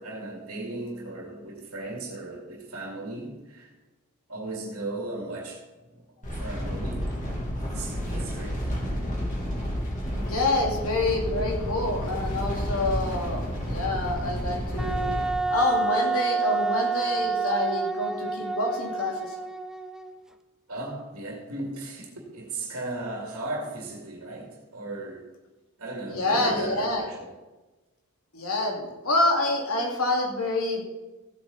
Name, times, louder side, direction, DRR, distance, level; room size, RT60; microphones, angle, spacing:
voice 1, 0.0-3.7 4.3-5.6 5.9-6.0 6.4-7.1 7.7-8.7 16.6-16.7 20.7-25.3 25.8-27.4, right 2 dB, 70° right, -1 dB, 2.4 m, -36 dB
sound 1, 6.2-15.3, equal, 35° left, 3.2 m, -31 dB
voice 2, 10.2-15.1 15.5-19.4 26.1-27.0 28.3-30.8, left 2 dB, 70° left, 0 dB, 2.7 m, -27 dB
Wind instrument woodwind instrument, 14.8-20.2, right 4 dB, ahead, 0.5 m, -28 dB
16.0 x 8.5 x 4.2 m, 1.1 s
head